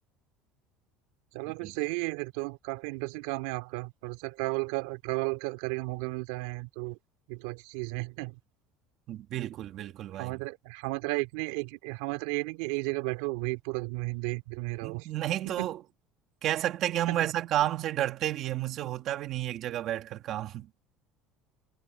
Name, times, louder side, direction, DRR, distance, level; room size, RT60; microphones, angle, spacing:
voice 1, 1.3-7.0 7.3-8.3 10.2-15.1 15.5-15.7 17.1-17.3 17.6-17.7, right 23 dB, 85° right, 2.9 m, -34 dB
voice 2, 9.1-10.4 14.8-15.8 16.4-20.7, right 12 dB, 40° right, 2.4 m, -31 dB
cardioid pair, 170°, 0 cm